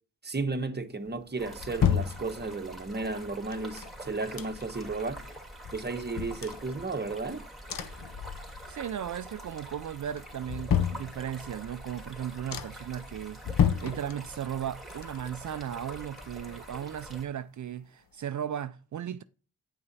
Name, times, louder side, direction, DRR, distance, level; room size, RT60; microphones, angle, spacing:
voice 1, 0.2-5.3 5.7-7.5, right 3 dB, 25° right, 1.1 m, -34 dB
sound 1, 1.1-2.8 3.5-4.9 5.3-5.4 5.6-7.3 7.7-8.9 9.2-9.7 10.1-11.6 12.1-12.2 12.5-13.0 13.4-14.6 14.9-16.7 17.0-17.1, left 8 dB, 65° left, 0.8 m, -32 dB
Stream, 1.4-17.3, right 1 dB, ahead, 2.6 m, -45 dB
voice 2, 8.7-19.2, right 9 dB, 55° right, 0.4 m, -36 dB
9.1 x 5.5 x 4.0 m
cardioid pair, 50°, 37 cm